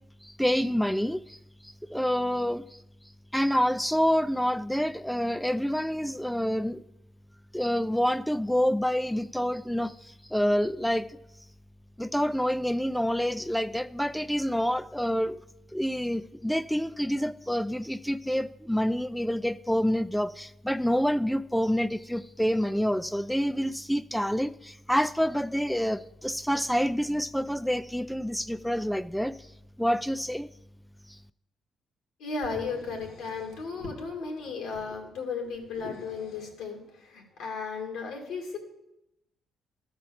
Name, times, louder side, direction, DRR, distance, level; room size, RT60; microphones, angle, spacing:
voice 1, 0.2-1.4 1.6-2.8 3.3-6.8 7.5-11.2 12.0-15.4 15.7-29.5 29.8-30.5 31.1-31.2, equal, ahead, 13 dB, 0.3 m, -27 dB
voice 2, 32.2-38.6, left 4 dB, 85° left, 2 dB, 2.4 m, -35 dB
13.5 x 4.5 x 6.9 m, 0.88 s
cardioid pair, 90°, 0 cm